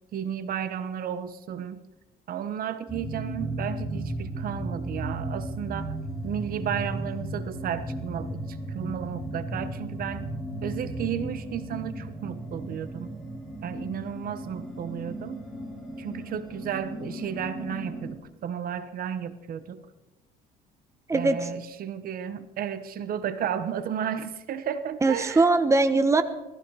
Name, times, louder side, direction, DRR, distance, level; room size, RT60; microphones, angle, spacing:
voice 1, 0.1-1.8 2.3-6.0 6.2-10.3 10.6-13.1 13.6-15.4 16.0-19.8 21.1-25.5, right 9 dB, 60° right, 12 dB, 1.2 m, -33 dB
sound 1, 2.9-18.1, right 1 dB, ahead, 5.3 m, -35 dB
voice 2, 21.1-21.5 25.0-26.2, right 3 dB, 15° right, 10 dB, 1.2 m, -21 dB
18.5 x 14.5 x 4.9 m, 1.0 s
cardioid pair, 110°, 17 cm